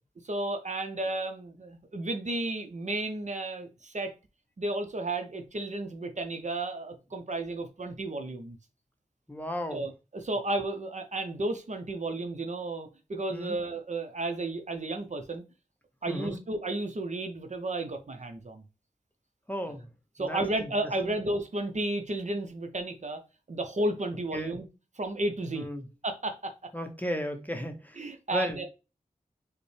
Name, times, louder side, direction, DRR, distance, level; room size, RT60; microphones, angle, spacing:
voice 1, 0.2-4.1 4.6-8.6 9.7-15.4 16.0-18.6 20.2-23.2 23.5-24.7 25.0-25.7 26.0-26.5 28.0-28.7, right 2 dB, 50° right, 0.7 m, -33 dB
voice 2, 9.3-9.8 13.3-13.6 16.1-16.4 19.5-19.9 20.2-20.7 21.1-21.2 24.3-24.6 25.5-25.9 26.7-28.0 28.3-28.6, equal, 10° left, 0.8 m, -34 dB
4.9 x 2.1 x 3.2 m
cardioid pair, 50°, 16 cm